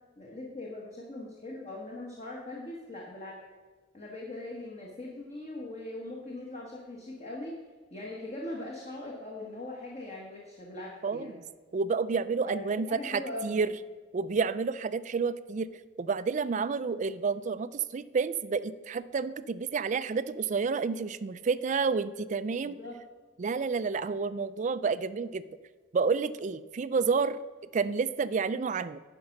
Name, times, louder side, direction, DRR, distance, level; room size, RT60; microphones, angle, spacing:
voice 1, 0.2-3.4 3.9-7.6 7.9-11.4 12.4-13.6 22.6-23.0, left 2 dB, 35° left, -2 dB, 1.4 m, -41 dB
voice 2, 11.0-11.4 11.7-13.7 14.1-15.7 16.0-22.8 23.4-25.4 25.9-27.4 27.7-29.0, right 5 dB, 40° right, 15 dB, 0.4 m, -30 dB
10.5 x 5.3 x 5.9 m, 1.4 s
head